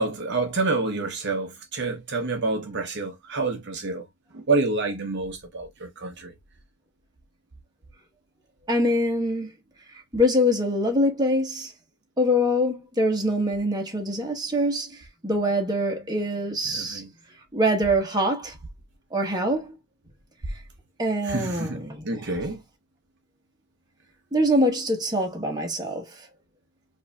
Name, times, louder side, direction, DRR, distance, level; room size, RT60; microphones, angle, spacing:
voice 1, 0.0-4.0 4.3-6.3 16.7-17.1 21.2-22.6, right 3 dB, 55° right, 0.8 m, -28 dB
voice 2, 8.7-9.5 10.1-11.7 12.2-14.9 15.2-17.0 17.5-18.5 19.1-19.7 21.0-22.0 24.3-26.1, equal, 20° right, 1.1 m, -24 dB
4.9 x 2.7 x 2.2 m
head